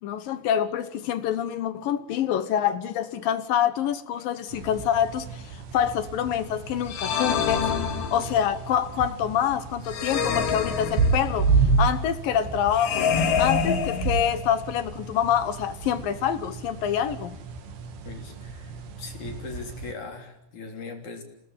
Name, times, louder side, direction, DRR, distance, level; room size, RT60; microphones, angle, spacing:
voice 1, 0.0-7.7 8.1-11.5 11.8-13.1 13.4-17.4, left 9 dB, 65° left, 2.6 m, -26 dB
sound 1, 4.5-19.9, right 4 dB, 75° right, 4.2 m, -31 dB
sound 2, 6.9-8.6 9.9-11.5 12.8-14.6, left 6 dB, 80° left, 4.5 m, -26 dB
voice 2, 18.0-21.2, left 4 dB, 50° left, 4.6 m, -40 dB
29.0 x 18.5 x 9.0 m
omnidirectional pair, 4.7 m